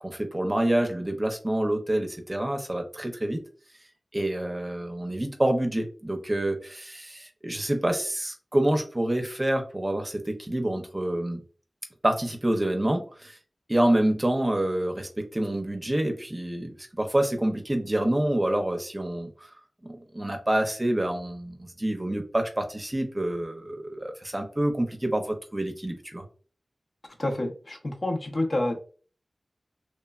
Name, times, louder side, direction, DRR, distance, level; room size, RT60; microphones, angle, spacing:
voice 1, 0.0-3.4 4.1-11.4 12.0-13.4 13.7-19.5 19.9-26.2, right 1 dB, 20° right, 4 dB, 0.6 m, -27 dB
voice 2, 27.2-28.8, left 1 dB, 55° left, 1 dB, 0.7 m, -28 dB
3.2 x 2.1 x 2.3 m, 0.39 s
wide cardioid pair, 80°, 0 cm